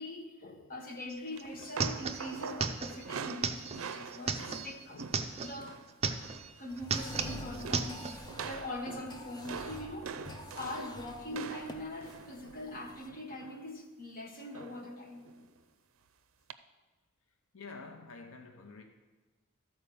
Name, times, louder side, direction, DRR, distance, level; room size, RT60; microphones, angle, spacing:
voice 1, 0.0-5.8 6.6-15.5, left 1 dB, 45° left, 1.4 m, -43 dB
sound 1, 1.1-1.2 1.4-5.6 5.9-6.5 6.8-8.2, right 5 dB, 30° right, 0.5 m, -35 dB
sound 2, 1.4-5.9 6.2-6.5 6.8-7.3 7.6-13.7 14.5-14.9 15.2-15.4 16.5-16.6, right 5 dB, 75° right, 0.5 m, -44 dB
sound 3, 6.7-13.1, left 1 dB, 20° left, 0.7 m, -47 dB
voice 2, 17.5-18.8, left 4 dB, 85° left, 0.9 m, -48 dB
13.0 x 4.6 x 6.9 m
head